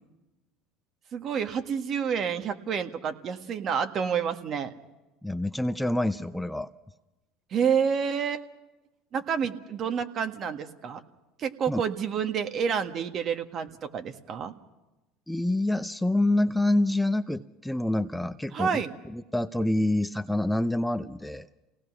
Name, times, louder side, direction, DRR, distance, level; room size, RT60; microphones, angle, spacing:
voice 1, 1.1-4.7 7.5-8.4 9.1-11.0 11.4-14.5 18.5-18.9, right 7 dB, 45° right, 7 dB, 1.7 m, -29 dB
voice 2, 5.2-6.7 11.7-11.8 15.3-18.8 19.1-21.5, left 1 dB, 5° left, 10 dB, 0.7 m, -27 dB
28.0 x 18.0 x 6.2 m, 1.0 s
hypercardioid pair, 85°, 0 cm